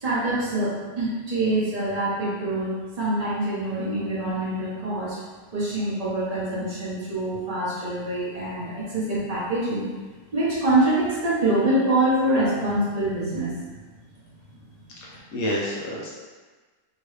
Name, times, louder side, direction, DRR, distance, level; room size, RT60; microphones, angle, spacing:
voice 1, 0.0-5.2 5.5-9.8 10.3-13.5, right 1 dB, 40° right, -8 dB, 0.6 m, -25 dB
voice 2, 15.0-16.1, equal, 70° left, -4 dB, 0.9 m, -29 dB
2.9 x 2.8 x 3.1 m, 1.3 s
omnidirectional pair, 1.9 m